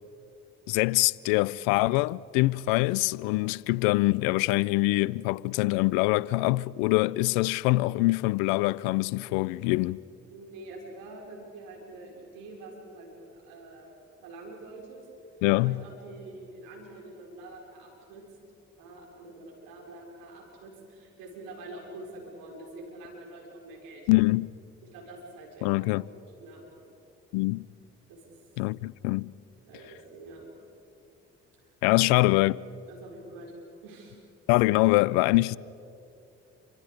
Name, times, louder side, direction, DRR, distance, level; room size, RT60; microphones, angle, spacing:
voice 1, 0.7-10.0 15.4-15.8 24.1-24.5 25.6-26.0 27.3-27.7 28.6-29.3 31.8-32.5 34.5-35.6, left 21 dB, 80° left, 0.5 m, -24 dB
voice 2, 10.3-13.9 14.2-15.0 15.5-18.2 18.8-24.1 24.9-26.7 28.1-28.2 29.6-30.5 32.0-32.2 32.9-33.5 33.8-34.2, right 2 dB, 80° right, 5.1 m, -46 dB
29.0 x 26.5 x 5.1 m
hypercardioid pair, 50°, 34 cm